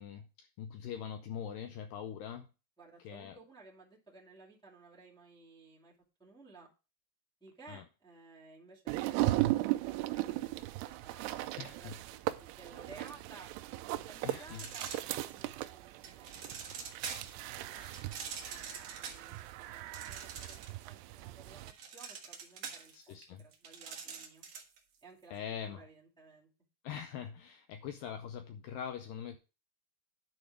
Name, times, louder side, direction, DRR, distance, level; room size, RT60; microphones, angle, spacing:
voice 1, 0.0-2.5 3.0-3.4 7.7-7.8 11.6-11.9 14.2-14.6 17.6-18.1 22.9-23.4 25.3-25.8 26.8-29.4, left 8 dB, 90° left, 7 dB, 1.9 m, -43 dB
voice 2, 2.8-5.9 6.2-6.7 7.4-10.5 10.8-13.5 13.9-17.0 17.5-24.4 25.0-26.5, right 3 dB, 5° left, -5 dB, 0.8 m, -57 dB
Shells in bag - Taking gun out of sleeve, 8.9-21.7, right 17 dB, 85° right, 2.5 m, -37 dB
sound 1, 14.5-15.5 16.0-17.4 17.9-20.9 21.2-24.8, right 6 dB, 65° right, 1.6 m, -44 dB
10.5 x 4.4 x 4.7 m, 0.31 s
omnidirectional pair, 4.8 m